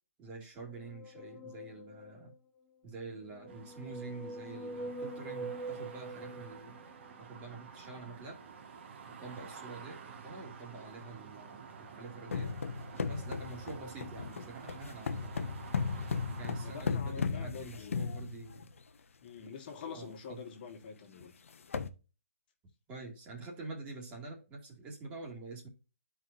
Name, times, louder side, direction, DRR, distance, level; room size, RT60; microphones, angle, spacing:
voice 1, 0.2-2.3 2.8-6.8 7.2-8.4 9.1-12.5 13.1-15.4 16.4-18.7 19.9-20.4 22.9-25.7, right 3 dB, 20° right, 2.2 m, -47 dB
sound 1, 0.7-2.3 3.2-7.1, right 2 dB, 10° left, 1.0 m, -44 dB
sound 2, 3.5-16.8, right 6 dB, 50° right, 1.7 m, -50 dB
sound 3, 12.3-18.8 19.5-19.6 19.9-20.1 20.5-20.6 21.2-21.3 21.5-21.9, left 5 dB, 70° left, 0.9 m, -36 dB
voice 2, 16.3-18.2 19.2-21.3, left 6 dB, 40° left, 1.8 m, -46 dB
11.0 x 4.7 x 2.6 m
hypercardioid pair, 145°, 8 cm